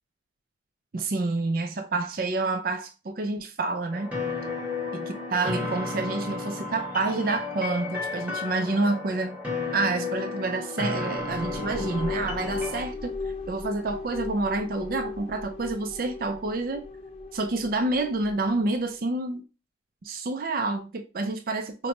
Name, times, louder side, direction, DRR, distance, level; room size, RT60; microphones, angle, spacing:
voice 1, 0.9-4.1 4.9-9.4 9.7-13.1 13.5-16.8 17.3-19.4 20.0-21.9, right 3 dB, 50° right, 0.4 m, -28 dB
sound 1, 3.9-12.8, left 3 dB, 10° right, 0.9 m, -33 dB
sound 2, 11.2-18.7, left 3 dB, 30° left, 0.5 m, -37 dB
5.2 x 2.2 x 2.9 m
head